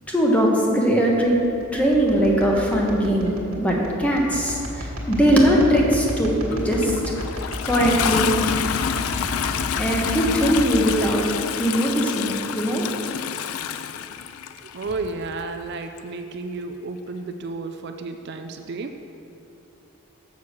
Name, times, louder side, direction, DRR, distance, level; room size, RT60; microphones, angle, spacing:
voice 1, 0.1-1.4 1.7-7.0 7.6-8.3 9.8-11.3 11.6-12.8, equal, 5° left, -2 dB, 1.1 m, -20 dB
sound 1, 1.1-10.9, equal, 75° right, 1.7 m, -33 dB
Toilet flush, 6.5-14.9 16.0-16.1, left 8 dB, 80° left, 0.4 m, -28 dB
voice 2, 14.7-18.9, right 3 dB, 50° right, 6 dB, 0.4 m, -32 dB
7.0 x 6.4 x 6.5 m, 2.8 s
head